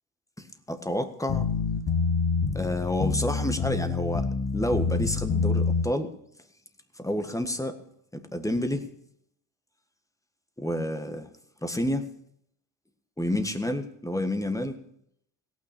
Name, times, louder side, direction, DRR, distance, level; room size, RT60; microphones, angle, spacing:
voice 1, 0.4-1.5 2.5-6.1 7.0-7.8 8.1-8.9 10.6-11.3 11.6-12.1 13.2-14.8, left 1 dB, 5° left, 8 dB, 1.6 m, -29 dB
sound 1, 1.3-5.8, left 4 dB, 40° left, 2.1 m, -27 dB
17.0 x 6.2 x 8.3 m, 0.72 s
supercardioid pair, 70°, 48 cm